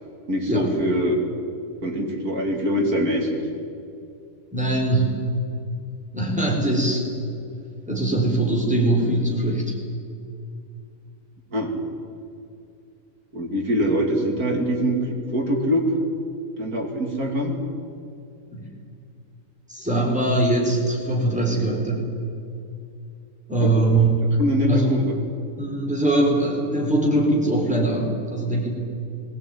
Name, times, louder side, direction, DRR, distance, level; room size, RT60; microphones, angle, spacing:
voice 1, 0.3-1.2 1.8-3.4 11.5-11.7 13.3-15.9 16.6-17.6 23.6-23.7 24.4-25.1, equal, 80° right, 2 dB, 3.2 m, -23 dB
voice 2, 4.5-5.2 6.1-7.0 7.9-9.8 18.5-18.6 19.7-22.1 23.5-24.2 24.7-24.9 25.6-28.7, right 2 dB, 5° right, -1 dB, 4.6 m, -22 dB
21.0 x 17.5 x 9.4 m, 2.6 s
omnidirectional pair, 1.5 m